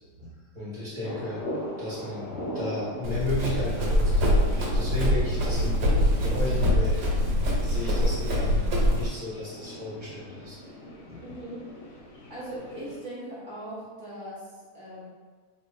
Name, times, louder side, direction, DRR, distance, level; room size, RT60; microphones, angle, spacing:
voice 1, 0.5-1.4 1.8-7.1 7.6-10.6 11.1-11.3, left 1 dB, 20° right, -9 dB, 0.8 m, -34 dB
sound 1, 1.0-13.0, equal, 70° left, 0.6 m, -40 dB
Run, 3.0-9.1, equal, 75° right, 1.5 m, -24 dB
voice 2, 11.2-11.7 12.3-15.1, right 1 dB, 40° right, -10 dB, 0.3 m, -39 dB
3.0 x 2.4 x 4.0 m, 1.5 s
omnidirectional pair, 2.1 m